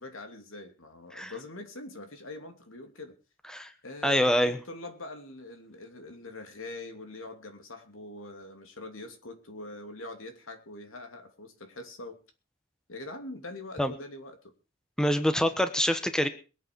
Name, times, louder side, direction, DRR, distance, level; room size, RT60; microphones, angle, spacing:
voice 1, 0.0-3.2 3.8-12.2 12.9-14.5, left 2 dB, 85° left, 5 dB, 2.8 m, -43 dB
voice 2, 4.0-4.6 13.8-13.9 15.0-16.3, equal, 5° left, 9 dB, 1.2 m, -25 dB
22.0 x 8.7 x 4.6 m, 0.34 s
head